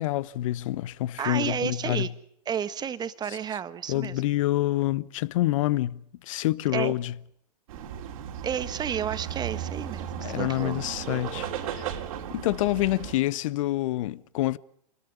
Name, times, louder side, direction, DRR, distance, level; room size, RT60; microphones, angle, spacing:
voice 1, 0.0-2.1 3.9-7.1 10.2-11.9 12.3-14.6, left 15 dB, 50° left, 1.0 m, -27 dB
voice 2, 1.2-2.1 2.4-4.2 6.7-6.9 8.4-10.8, right 8 dB, 20° right, 1.5 m, -31 dB
sound 1, 7.7-13.2, right 9 dB, 55° right, 3.3 m, -35 dB
27.5 x 21.0 x 7.0 m
figure-of-eight pair, 105°, 21 cm